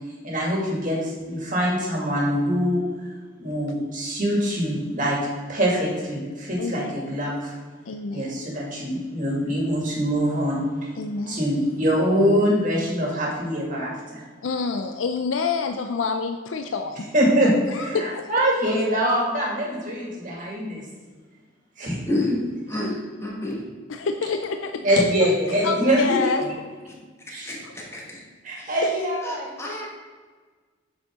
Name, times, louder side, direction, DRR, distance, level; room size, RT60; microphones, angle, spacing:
voice 1, 0.2-2.8 3.4-5.2 5.5-7.5 8.1-10.6 11.3-14.2 17.1-20.8 21.8-22.0 22.3-22.4 22.7-22.8 24.8-26.0 27.3-27.5 28.4-29.4, equal, 45° right, -3 dB, 2.2 m, -24 dB
voice 2, 6.6-7.2 7.9-8.5 11.0-11.4 14.4-17.0 17.7-18.3 23.9-26.4, left 4 dB, 85° left, 6 dB, 0.5 m, -28 dB
voice 3, 22.7-23.6 25.8-26.2 27.4-27.6 27.9-28.2 29.2-29.9, left 2 dB, 15° left, -3 dB, 1.5 m, -28 dB
7.8 x 6.3 x 3.7 m, 1.5 s
head